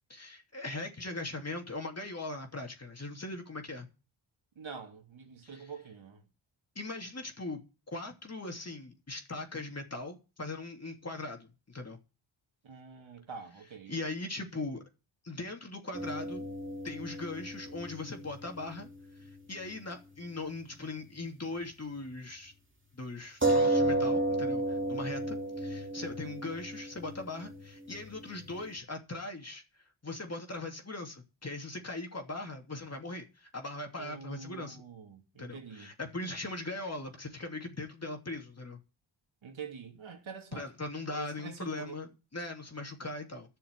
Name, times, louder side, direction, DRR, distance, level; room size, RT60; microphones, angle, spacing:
voice 1, 0.1-3.9 5.4-5.7 6.7-7.6 7.9-12.0 13.9-14.8 15.2-16.4 16.8-18.9 19.2-22.5 22.9-34.8 35.4-38.8 40.5-43.6, left 2 dB, 30° left, 2.9 m, -40 dB
voice 2, 4.6-6.3 12.6-14.0 26.0-26.4 34.0-35.9 39.4-40.7 41.1-42.0, right 6 dB, 70° right, 2.8 m, -46 dB
sound 1, 15.9-19.8 20.1-20.2 23.4-28.6, right 2 dB, 25° right, 2.8 m, -33 dB
11.5 x 6.7 x 8.2 m
cardioid pair, 70°, 48 cm